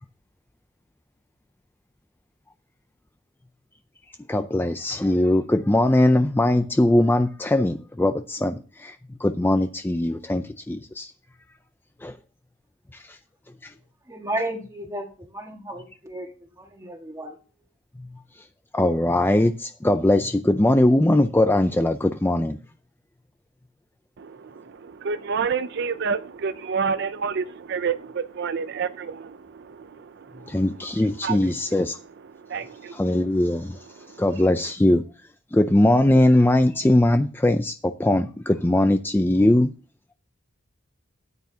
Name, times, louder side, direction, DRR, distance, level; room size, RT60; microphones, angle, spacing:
voice 1, 4.3-9.0 9.2-11.1 12.0-12.1 12.9-13.2 13.6-13.7 18.7-22.6 30.5-31.9 32.9-33.8 34.2-35.0 35.5-39.7, left 1 dB, 10° left, 0.4 m, -20 dB
voice 2, 14.0-17.4, right 1 dB, 15° right, 1.6 m, -33 dB
voice 3, 24.2-34.6, right 6 dB, 55° right, 0.4 m, -31 dB
13.5 x 9.4 x 2.8 m
head